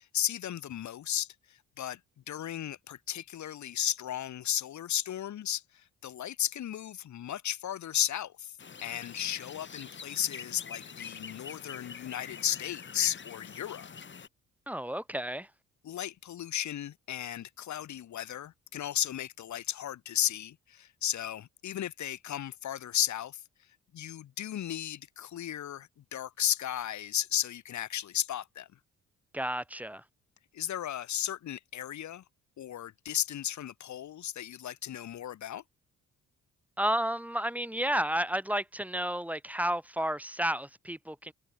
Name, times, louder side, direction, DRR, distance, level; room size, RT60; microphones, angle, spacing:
voice 1, 0.0-2.0 2.3-8.6 8.8-13.9 15.8-23.4 23.9-28.7 30.5-32.2 32.6-35.6, left 11 dB, 70° left, 4.0 m, -34 dB
sound 1, 8.6-14.3, left 6 dB, 40° left, 3.3 m, -45 dB
voice 2, 14.7-15.5 29.3-30.0 36.8-41.3, equal, 5° right, 3.6 m, -31 dB
cardioid pair, 90°, 30 cm